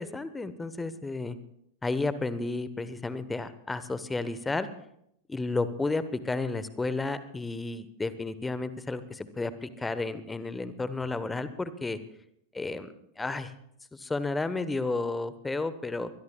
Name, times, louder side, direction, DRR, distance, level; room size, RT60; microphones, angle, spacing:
voice 1, 0.0-1.4 1.8-4.7 5.3-12.0 12.5-13.5 13.9-16.1, left 3 dB, 10° left, 14 dB, 1.0 m, -32 dB
22.5 x 22.0 x 2.3 m, 0.74 s
figure-of-eight pair, 90°, 0 cm